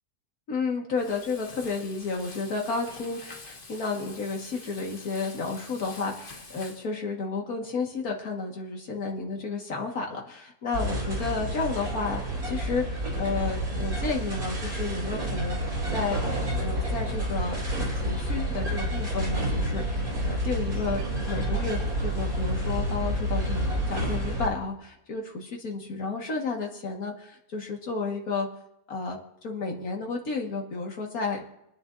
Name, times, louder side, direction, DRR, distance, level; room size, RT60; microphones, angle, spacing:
voice 1, 0.5-16.2 16.6-28.5 28.9-29.2 29.4-31.4, left 4 dB, 70° left, 1 dB, 2.3 m, -32 dB
Frying (food), 0.9-6.8, left 3 dB, 35° left, 1.4 m, -46 dB
sound 1, 10.7-24.5, right 1 dB, 70° right, 3.7 m, -29 dB
25.5 x 9.5 x 2.7 m, 0.83 s
omnidirectional pair, 1.6 m